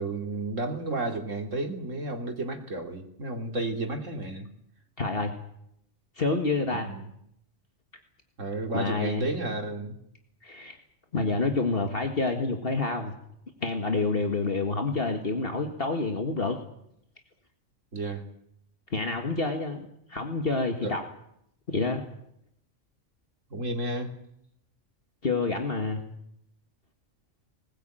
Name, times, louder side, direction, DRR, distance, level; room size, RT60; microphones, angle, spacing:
voice 1, 0.0-4.5 6.8-7.1 8.4-10.0 17.9-18.2 20.8-21.0 23.5-24.1, right 2 dB, 75° right, 5 dB, 3.1 m, -32 dB
voice 2, 5.0-5.3 6.2-6.9 8.7-9.3 10.4-10.8 11.1-13.1 13.6-16.6 18.9-21.0 21.7-22.0 25.2-26.0, left 3 dB, 50° left, 5 dB, 2.0 m, -28 dB
20.5 x 19.0 x 9.0 m, 0.75 s
omnidirectional pair, 1.3 m